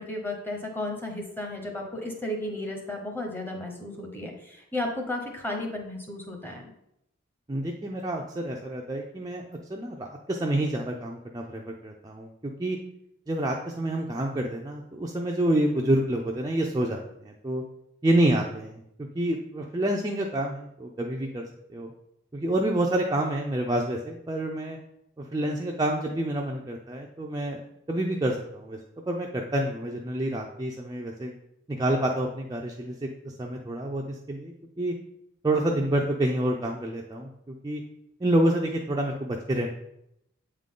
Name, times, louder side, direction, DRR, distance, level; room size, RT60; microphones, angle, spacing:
voice 1, 0.0-6.7, left 1 dB, 10° left, 1 dB, 0.9 m, -34 dB
voice 2, 7.5-9.4 9.7-12.8 13.3-17.6 18.0-18.8 19.1-21.4 21.7-21.9 22.3-24.8 25.2-27.6 27.9-28.8 29.1-31.3 31.7-33.1 33.4-34.9 35.4-37.8 38.2-39.7, right 1 dB, 20° right, 0 dB, 0.4 m, -28 dB
8.1 x 3.7 x 3.7 m, 0.79 s
head